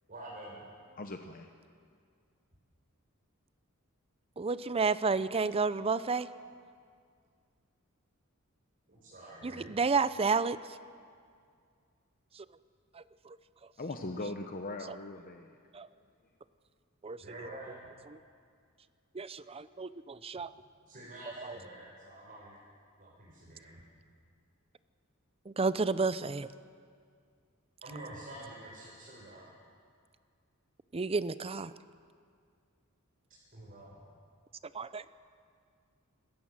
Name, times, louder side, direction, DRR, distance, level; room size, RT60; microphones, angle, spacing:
voice 1, 0.1-0.7 8.9-9.8 17.2-17.8 20.9-22.6 23.0-23.8 27.8-29.5 33.5-34.0, right 1 dB, 45° right, -5 dB, 4.3 m, -47 dB
voice 2, 1.0-1.5 13.8-15.6, left 2 dB, 40° left, 5 dB, 0.9 m, -40 dB
voice 3, 4.4-6.3 9.4-10.6 12.4-12.5 12.9-13.4 14.9-15.0 15.7-15.9 17.0-17.5 18.1-18.2 19.1-20.5 21.4-21.6 25.5-26.5 30.9-31.7 34.7-35.0, right 4 dB, 30° right, 15 dB, 0.5 m, -31 dB
26.5 x 13.5 x 7.4 m, 2.2 s
head